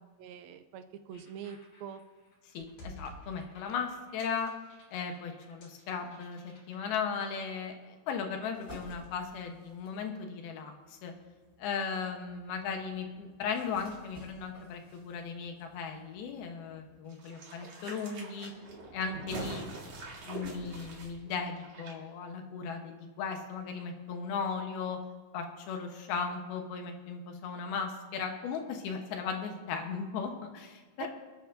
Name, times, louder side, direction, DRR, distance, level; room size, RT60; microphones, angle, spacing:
voice 1, 0.2-2.0 31.0-31.1, right 8 dB, 80° right, 9 dB, 2.3 m, -44 dB
sound 1, 1.1-6.9, equal, 55° left, 3.9 m, -54 dB
voice 2, 2.5-4.5 4.9-11.1 11.6-18.5 18.9-19.7 20.2-25.0 25.3-31.1, left 6 dB, 80° left, 4 dB, 3.0 m, -37 dB
sound 2, 8.5-10.1 10.8-17.0, left 1 dB, 20° left, 4.6 m, -55 dB
sound 3, 17.1-21.9 22.2-22.3, right 2 dB, 50° right, 2.6 m, -44 dB
26.0 x 9.2 x 2.7 m, 1.4 s
omnidirectional pair, 4.5 m